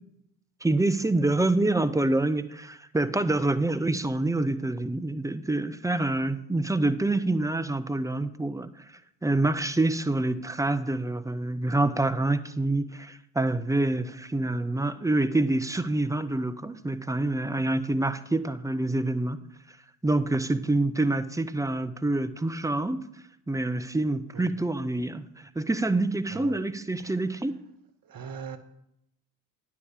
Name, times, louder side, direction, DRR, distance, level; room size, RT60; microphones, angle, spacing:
voice 1, 0.6-8.8 9.2-19.4 20.0-23.1 23.5-27.6, right 2 dB, 5° right, 0.6 m, -26 dB
voice 2, 26.3-26.6 27.0-27.1 28.0-28.6, right 6 dB, 45° right, 1.3 m, -40 dB
9.8 x 4.8 x 7.4 m
hypercardioid pair, 55°, 46 cm